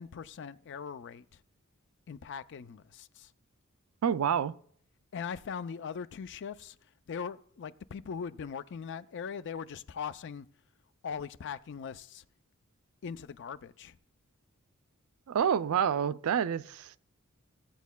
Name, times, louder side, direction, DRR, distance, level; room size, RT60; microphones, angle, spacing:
voice 1, 0.0-1.4 2.1-3.3 5.1-6.8 7.1-10.5 11.0-12.2 13.0-14.0, left 6 dB, 55° left, 0.4 m, -40 dB
voice 2, 4.0-4.6 15.3-17.0, right 8 dB, 70° right, 0.3 m, -28 dB
16.0 x 8.2 x 2.2 m
head